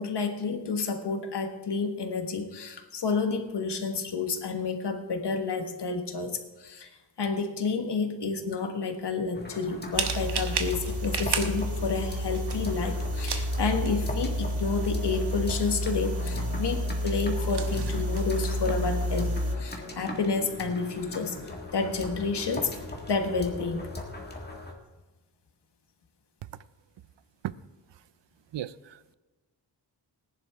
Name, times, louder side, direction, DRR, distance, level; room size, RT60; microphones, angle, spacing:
voice 1, 0.0-6.9 7.2-21.4 21.7-23.9, left 4 dB, 70° left, 6 dB, 1.5 m, -30 dB
sound 1, 9.3-24.7, left 2 dB, 25° left, 1.7 m, -40 dB
sound 2, 9.9-19.6, equal, 65° right, 1.3 m, -30 dB
voice 2, 28.5-29.1, right 11 dB, 85° right, 17 dB, 0.5 m, -35 dB
19.5 x 10.5 x 3.5 m, 1.2 s
wide cardioid pair, 180°, 43 cm